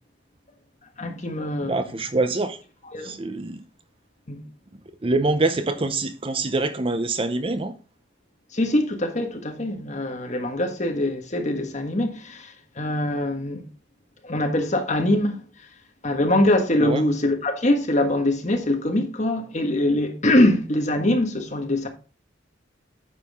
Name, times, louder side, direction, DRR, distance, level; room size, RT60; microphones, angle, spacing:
voice 1, 1.0-1.8 2.9-3.2 4.3-4.4 8.5-13.6 14.2-15.5 16.0-21.9, left 1 dB, 40° left, 1.5 m, -23 dB
voice 2, 1.6-2.6 3.0-3.6 5.0-7.7 16.8-17.0, right 2 dB, 30° right, 0.6 m, -25 dB
9.2 x 6.1 x 3.6 m
head